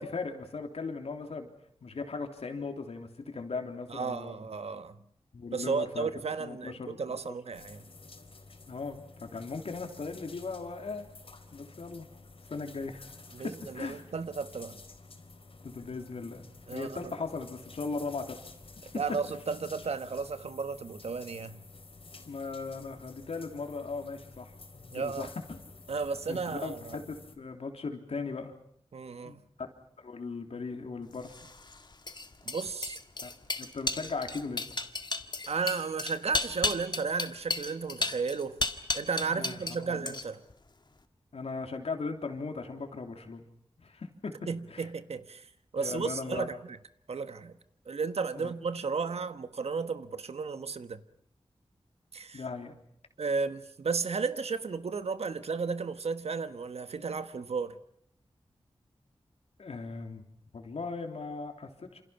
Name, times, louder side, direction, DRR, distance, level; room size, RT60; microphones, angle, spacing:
voice 1, 0.0-1.5 1.8-4.5 5.3-6.1 6.4-7.3 8.7-11.1 11.5-12.1 12.5-13.1 13.4-14.0 15.6-16.4 16.7-18.4 19.1-19.2 22.3-24.5 24.9-25.4 26.3-28.5 29.2-29.4 30.0-31.4 33.2-33.3 33.6-34.6 39.3-40.1 41.3-43.5 43.8-44.9 45.8-46.6 48.3-48.5 52.3-52.8 59.6-60.2 60.5-62.0, left 4 dB, 80° left, 3.4 m, -38 dB
voice 2, 3.9-5.0 5.5-7.9 13.3-14.8 16.7-17.1 18.8-21.6 24.9-25.3 25.9-27.0 28.9-29.4 32.4-33.0 35.5-38.6 38.9-40.4 44.5-45.5 45.7-46.8 47.1-47.6 47.8-51.0 52.1-52.4 53.2-57.8, right 5 dB, 85° right, 1.4 m, -34 dB
sound 1, 7.5-27.4, left 3 dB, 65° left, 4.1 m, -51 dB
sound 2, 31.2-39.8 40.1-40.5, left 2 dB, 45° left, 1.8 m, -34 dB
28.0 x 27.5 x 5.9 m
wide cardioid pair, 75°, 10 cm